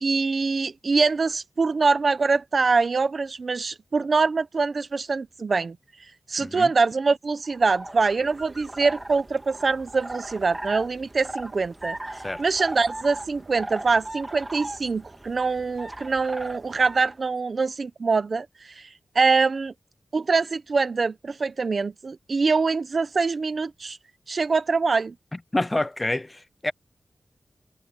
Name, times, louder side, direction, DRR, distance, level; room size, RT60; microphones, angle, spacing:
voice 1, 0.0-5.8 6.3-12.0 12.4-18.5 19.1-19.7 20.1-24.0 24.3-25.1, right 4 dB, 50° right, 0.8 m, -24 dB
sound 1, 7.4-17.2, right 1 dB, 15° right, 1.5 m, -38 dB
voice 2, 12.1-12.4 25.5-26.7, left 2 dB, 20° left, 0.3 m, -27 dB
wide cardioid pair, 140°, 0 cm